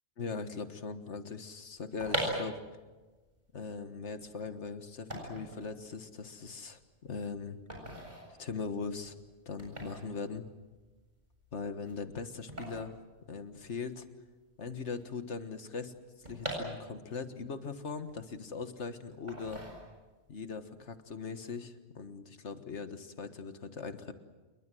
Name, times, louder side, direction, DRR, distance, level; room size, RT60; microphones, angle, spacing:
voice 1, 0.2-2.6 3.5-7.6 8.4-9.2 9.5-10.4 11.5-12.9 13.3-14.1 14.6-19.6 20.3-24.1, left 5 dB, 90° left, 9 dB, 1.8 m, -40 dB
sound 1, 1.7-13.9 14.1-14.2 14.4-17.3 17.7-18.7 19.3-20.3 20.6-20.9, right 1 dB, 40° right, 7.5 m, -41 dB
28.0 x 22.5 x 7.7 m, 1.3 s
omnidirectional pair, 1.2 m